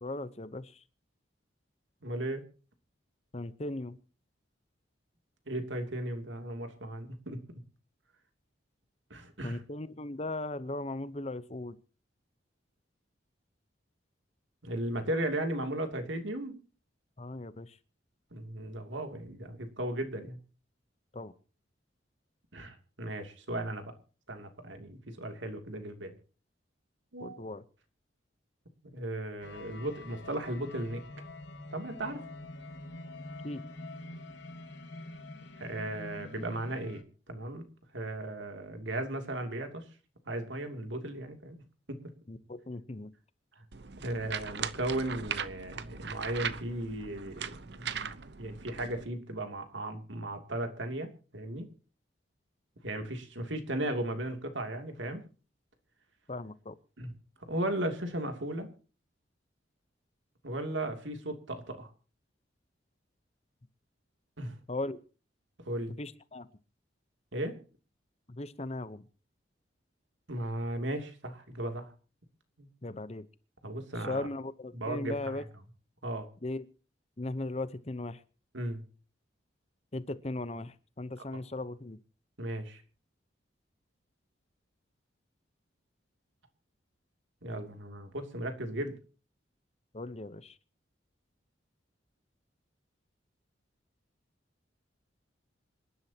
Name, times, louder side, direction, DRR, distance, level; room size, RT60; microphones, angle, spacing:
voice 1, 0.0-0.8 3.3-4.0 9.4-11.8 17.2-17.8 21.1-21.3 27.2-27.6 33.4-33.6 42.3-43.1 56.3-56.8 64.7-65.0 66.0-66.5 68.3-69.0 72.8-73.3 74.1-75.4 76.4-76.6 77.2-78.2 79.9-82.0 89.9-90.6, left 2 dB, 35° left, 15 dB, 0.8 m, -38 dB
voice 2, 2.0-2.4 5.5-7.4 9.1-9.6 14.6-16.5 18.3-20.4 22.5-23.9 24.3-26.2 27.1-27.4 28.9-31.0 31.7-32.2 35.6-37.0 37.3-37.6 37.9-39.8 40.3-41.6 41.9-42.0 44.0-48.1 48.4-51.7 52.8-55.2 57.0-57.1 57.5-58.7 60.4-61.9 64.4-64.6 65.6-65.9 67.3-67.6 70.3-71.9 72.6-72.7 73.6-74.3 74.7-75.4 76.0-76.3 78.5-78.8 81.3-81.4 82.4-82.8 87.4-88.9, right 1 dB, 75° right, 6 dB, 2.8 m, -36 dB
sound 1, 29.4-37.0, left 2 dB, 70° left, 2.4 m, -46 dB
sound 2, 43.7-49.0, right 7 dB, 60° right, 0.8 m, -39 dB
27.0 x 11.0 x 2.9 m, 0.37 s
head